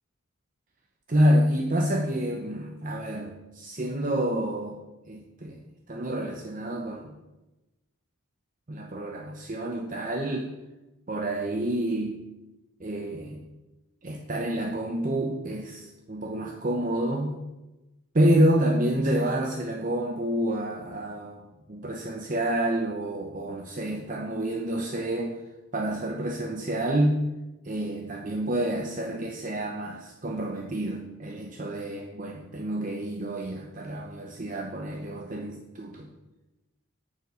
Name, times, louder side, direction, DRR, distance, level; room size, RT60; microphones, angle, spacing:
voice 1, 1.1-4.8 5.1-5.6 5.9-7.1 8.7-10.5 11.1-12.2 12.8-13.4 14.0-17.4 18.1-25.4 25.7-27.2 27.6-36.1, right 1 dB, 40° right, 1 dB, 0.8 m, -28 dB
8.9 x 7.1 x 6.4 m, 1.0 s
head